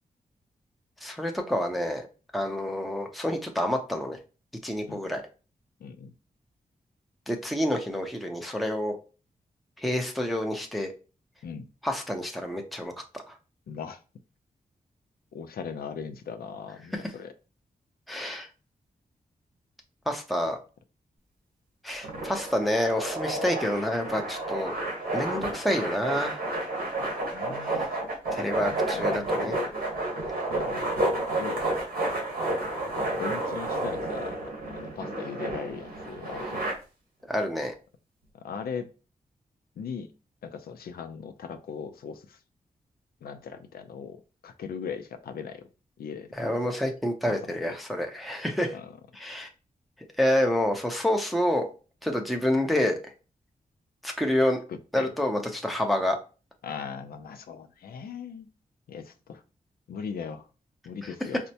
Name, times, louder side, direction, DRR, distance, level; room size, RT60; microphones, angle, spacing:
voice 1, 1.0-2.1 2.3-4.2 4.6-5.2 7.3-9.0 9.8-10.9 11.8-12.9 18.1-18.5 20.1-20.6 21.8-24.7 25.1-26.4 27.7-27.9 28.3-29.5 37.3-37.7 46.3-48.8 49.1-49.5 50.2-51.7 52.0-53.0 54.0-54.6 54.9-56.2 61.0-61.1, left 1 dB, ahead, 0.6 m, -28 dB
voice 2, 5.8-6.1 11.4-11.7 13.7-14.0 15.3-17.3 27.0-28.0 28.2-29.7 30.5-31.7 33.0-36.7 38.3-38.9 39.8-40.1 40.4-42.4 43.2-44.2 44.4-45.7 46.0-46.6 47.3-47.8 48.7-48.9 54.7-55.1 56.6-58.5 58.9-59.4 59.9-60.5 60.8-61.4, left 6 dB, 90° left, 0.4 m, -39 dB
sound 1, 22.0-36.7, right 2 dB, 90° right, 1.3 m, -31 dB
4.3 x 2.1 x 2.7 m
wide cardioid pair, 100°, 15 cm